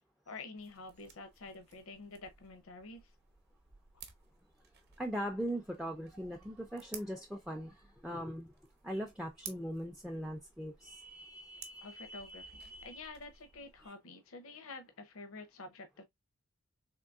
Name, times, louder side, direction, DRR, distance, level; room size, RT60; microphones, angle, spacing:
voice 1, 0.3-3.0 11.8-12.6 12.8-16.0, left 3 dB, 70° left, 0.6 m, -48 dB
sound 1, 0.6-13.9, right 7 dB, 45° right, 0.7 m, -56 dB
voice 2, 5.0-8.5 8.8-13.0 13.8-13.9, equal, 5° right, 0.3 m, -41 dB
3.7 x 3.0 x 2.3 m
head